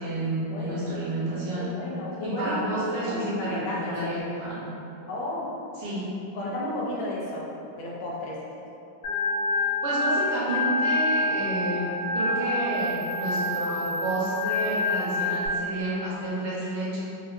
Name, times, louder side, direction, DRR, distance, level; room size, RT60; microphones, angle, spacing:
voice 1, 0.0-1.7 2.2-4.6 5.8-6.0 9.8-11.9 12.1-17.0, right 1 dB, 65° right, -9 dB, 1.5 m, -30 dB
voice 2, 0.5-0.9 1.6-2.7 2.9-4.2 5.1-5.5 6.3-7.5 7.7-8.4, left 1 dB, 75° left, -4 dB, 1.4 m, -33 dB
Organ, 9.0-15.5, left 2 dB, 60° left, 0.8 m, -27 dB
3.9 x 2.4 x 2.5 m, 2.7 s
omnidirectional pair, 2.3 m